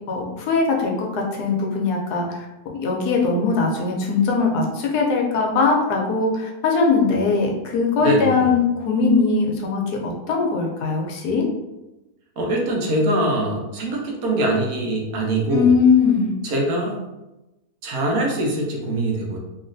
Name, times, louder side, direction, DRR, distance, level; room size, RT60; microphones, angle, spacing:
voice 1, 0.1-11.4 15.5-16.3, left 4 dB, 85° left, 0 dB, 1.2 m, -20 dB
voice 2, 8.0-8.5 12.4-15.7 16.4-17.0 17.8-19.4, right 1 dB, 75° right, -1 dB, 1.2 m, -23 dB
3.1 x 2.9 x 2.5 m, 1.0 s
omnidirectional pair, 1.6 m